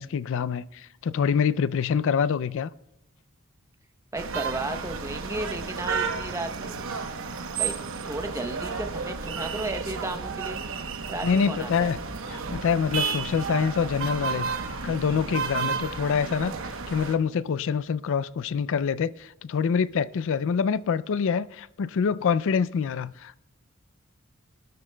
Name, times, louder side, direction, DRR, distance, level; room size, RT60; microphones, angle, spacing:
voice 1, 0.0-2.7 11.2-12.0 12.3-14.5 14.8-23.4, left 6 dB, 65° left, 0.4 m, -26 dB
voice 2, 4.1-6.8 7.6-10.6 11.1-11.9, right 2 dB, 15° right, 0.8 m, -34 dB
sound 1, 4.2-17.2, right 5 dB, 70° right, 0.9 m, -32 dB
23.0 x 12.5 x 2.2 m
head